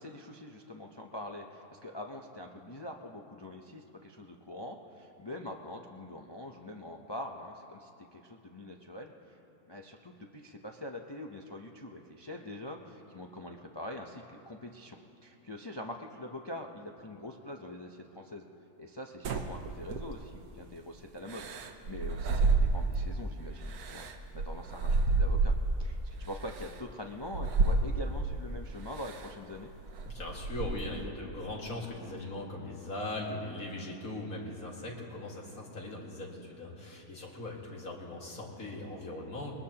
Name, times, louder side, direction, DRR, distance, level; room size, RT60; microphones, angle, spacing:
voice 1, 0.0-9.4 9.7-18.4 18.8-21.5 21.8-24.1 24.3-25.5 25.8-29.7, left 1 dB, 30° left, 2 dB, 0.5 m, -44 dB
sound 1, 19.2-20.4 21.3-23.2 23.7-25.9 26.5-26.7 27.3-28.4 29.0-29.3 29.7-31.0, right 3 dB, 80° right, 1.4 m, -30 dB
voice 2, 30.0-39.5, left 2 dB, 65° left, -2 dB, 2.4 m, -40 dB
21.5 x 20.0 x 2.9 m, 2.9 s
omnidirectional pair, 1.6 m